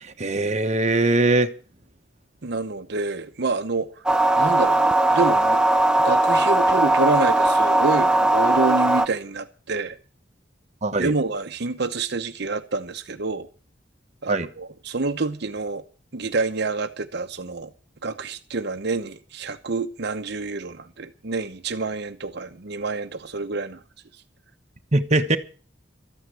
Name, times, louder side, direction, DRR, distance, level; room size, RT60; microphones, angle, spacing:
voice 1, 0.2-1.5 10.8-11.1 14.3-14.5 24.9-25.4, right 2 dB, 35° right, 1.2 m, -21 dB
voice 2, 2.4-4.0 4.4-4.8 5.1-5.6 6.0-10.0 11.0-13.5 14.2-15.8 16.1-17.7 18.0-23.8, right 3 dB, 60° right, 0.9 m, -27 dB
sound 1, 4.1-9.1, right 2 dB, 5° right, 0.6 m, -19 dB
13.5 x 9.5 x 8.2 m
head